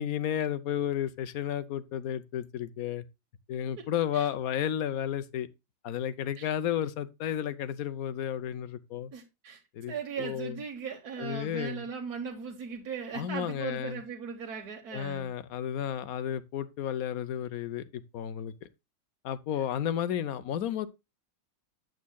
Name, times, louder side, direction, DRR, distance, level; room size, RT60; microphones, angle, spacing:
voice 1, 0.0-3.0 3.5-5.5 5.8-9.1 9.7-10.6 11.2-11.8 13.1-14.0 14.9-18.7 19.2-20.9, left 10 dB, 65° left, 1.0 m, -32 dB
voice 2, 9.1-9.6 9.9-15.3, right 6 dB, 55° right, 1.7 m, -38 dB
9.4 x 8.8 x 2.2 m
omnidirectional pair, 2.0 m